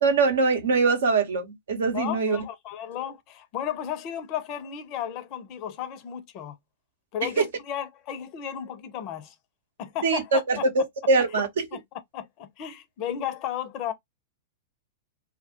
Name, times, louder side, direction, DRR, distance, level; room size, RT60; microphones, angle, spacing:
voice 1, 0.0-2.4 7.4-7.5 10.0-11.6, right 4 dB, 70° right, 0.7 m, -23 dB
voice 2, 1.9-6.6 7.1-9.3 9.8-10.6 11.7-11.8 12.1-13.9, left 10 dB, 40° left, 0.5 m, -34 dB
2.2 x 2.1 x 2.8 m
figure-of-eight pair, 105°, 0 cm